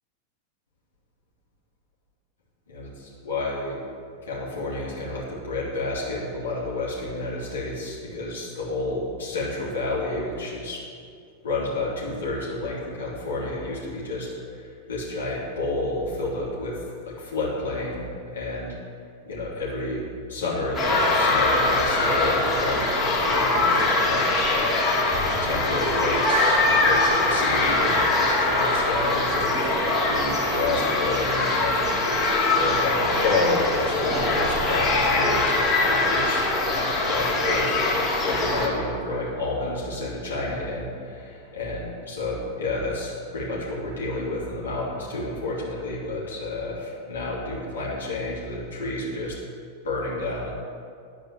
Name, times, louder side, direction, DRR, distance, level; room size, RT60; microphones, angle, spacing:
voice 1, 2.7-3.8 4.2-10.8 11.4-16.8 17.0-18.8 19.2-32.3 32.6-49.4 49.8-50.5, left 2 dB, 70° left, -6 dB, 3.0 m, -30 dB
sound 1, 20.7-38.7, left 2 dB, 25° left, 2.3 m, -22 dB
11.0 x 4.9 x 7.6 m, 2.3 s
figure-of-eight pair, 90°, 0 cm